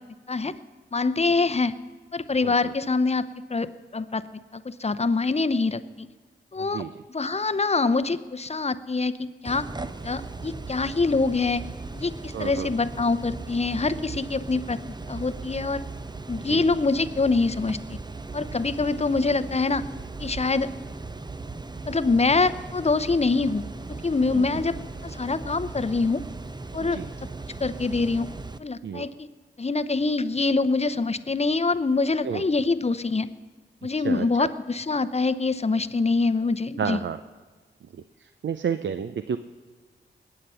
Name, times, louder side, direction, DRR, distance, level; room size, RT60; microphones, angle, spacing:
voice 1, 0.9-1.8 2.1-4.2 4.5-6.1 6.5-9.7 10.0-11.6 11.9-14.8 15.1-15.8 16.3-18.0 18.3-19.8 20.2-20.7 21.8-23.6 23.9-24.7 25.0-26.2 26.7-27.0 27.6-28.3 28.6-29.3 29.6-33.3 33.8-37.0, left 3 dB, 30° left, 13 dB, 0.7 m, -25 dB
voice 2, 2.4-2.7 6.6-6.9 12.3-12.7 16.5-16.7 24.3-24.6 26.8-27.1 28.8-29.1 32.2-32.4 34.0-34.5 36.8-37.2 38.2-39.4, right 7 dB, 65° right, 11 dB, 0.5 m, -31 dB
sound 1, 9.5-28.6, right 3 dB, 20° right, 0.7 m, -38 dB
20.5 x 8.7 x 5.7 m, 1.4 s
cardioid pair, 45°, 20 cm